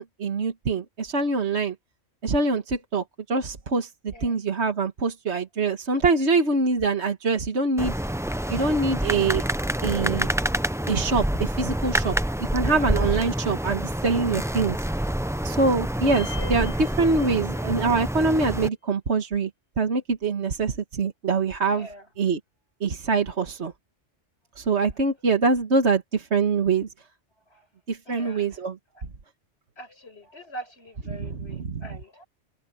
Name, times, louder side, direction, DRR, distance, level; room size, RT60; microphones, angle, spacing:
voice 1, 0.0-1.8 2.2-7.9 8.5-9.4 9.8-10.3 10.9-12.2 12.5-14.8 15.4-19.5 19.8-21.9 22.2-22.4 22.8-23.7 24.6-26.9 27.9-28.8 31.2-31.8, right 4 dB, 65° right, 1.8 m, -24 dB
voice 2, 4.1-4.4 12.7-12.9 21.7-22.1 27.5-27.7 28.1-28.6 28.9-29.0 29.8-32.3, right 1 dB, 60° left, 6.0 m, -43 dB
sound 1, 7.8-18.7, right 1 dB, 5° right, 0.4 m, -27 dB
sound 2, 16.1-17.9, left 3 dB, 75° left, 4.8 m, -41 dB
omnidirectional pair, 1.2 m